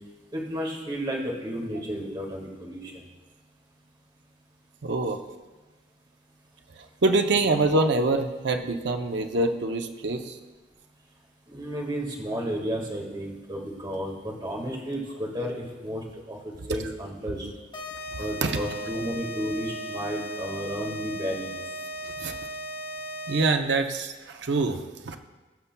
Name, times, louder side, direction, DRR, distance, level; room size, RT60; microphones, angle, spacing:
voice 1, 0.3-2.9 11.5-16.4 16.7-17.5 18.2-21.6, equal, 25° right, -2 dB, 1.7 m, -32 dB
voice 2, 4.8-5.2 7.0-10.4 16.7-16.8 18.4-18.6 22.0-22.3 23.3-25.2, right 2 dB, 65° right, 6 dB, 0.6 m, -25 dB
sound 1, 17.7-23.7, right 1 dB, 25° left, 1.1 m, -37 dB
19.0 x 7.0 x 2.2 m, 1.3 s
head